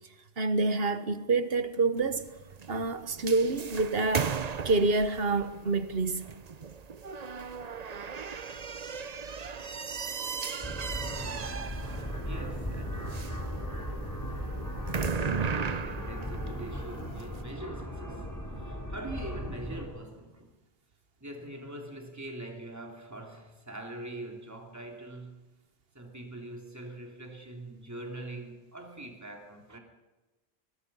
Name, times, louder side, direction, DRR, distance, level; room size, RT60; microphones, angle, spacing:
voice 1, 0.4-2.3 2.7-4.3 4.6-6.3, right 3 dB, 70° right, 1.5 m, -27 dB
sound 1, 2.0-17.4, right 6 dB, 45° right, 0.8 m, -37 dB
sound 2, 10.6-19.9, equal, 20° left, 4.0 m, -37 dB
voice 2, 12.2-13.4 15.4-20.6 21.2-25.4 25.9-29.8, right 1 dB, 15° right, 3.1 m, -43 dB
23.5 x 21.5 x 5.5 m
omnidirectional pair, 1.1 m